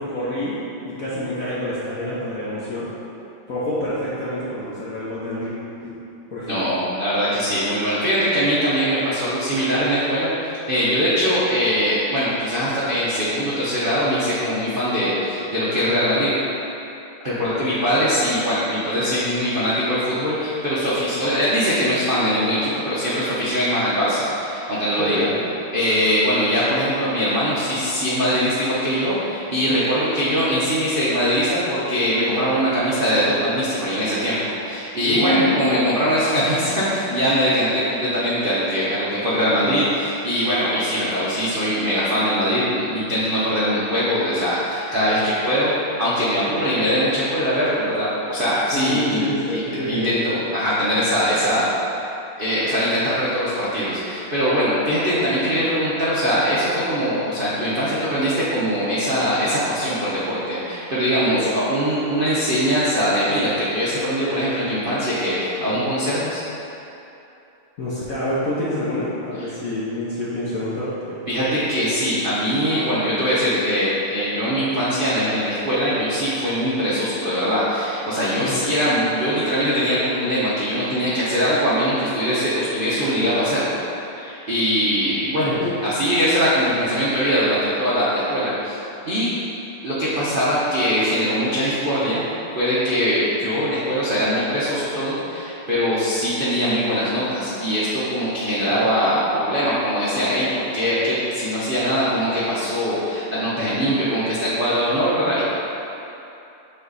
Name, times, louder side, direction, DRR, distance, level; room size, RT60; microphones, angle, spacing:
voice 1, 0.0-2.9 3.5-5.5 5.8-5.9 6.3-6.6 17.4-17.7 25.0-25.5 35.0-35.7 48.7-50.2 61.2-61.6 67.8-71.2 78.4-78.7 85.4-85.7 98.7-98.8, left 1 dB, 55° left, -8 dB, 1.0 m, -27 dB
voice 2, 6.5-10.3 10.7-16.3 17.2-25.3 25.7-45.7 46.0-49.2 49.5-49.6 49.9-51.7 52.4-66.4 69.4-69.5 71.3-83.8 84.2-88.8 89.0-89.3 89.8-92.2 92.5-105.4, equal, 55° right, -10 dB, 0.6 m, -22 dB
7.3 x 3.4 x 4.0 m, 2.8 s
omnidirectional pair, 2.4 m